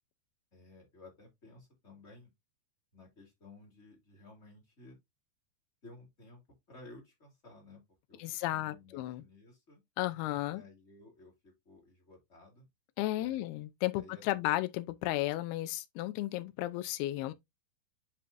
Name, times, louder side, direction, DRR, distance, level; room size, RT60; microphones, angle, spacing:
voice 1, 0.5-2.3 2.9-5.0 5.8-6.4 6.7-7.8 8.1-8.2 8.5-9.8 10.5-12.7 13.1-13.4 13.9-14.4, left 2 dB, 25° left, 1.7 m, -55 dB
voice 2, 8.2-9.2 10.0-10.6 13.0-17.3, left 16 dB, 80° left, 2.5 m, -34 dB
10.5 x 3.7 x 2.6 m
omnidirectional pair, 4.9 m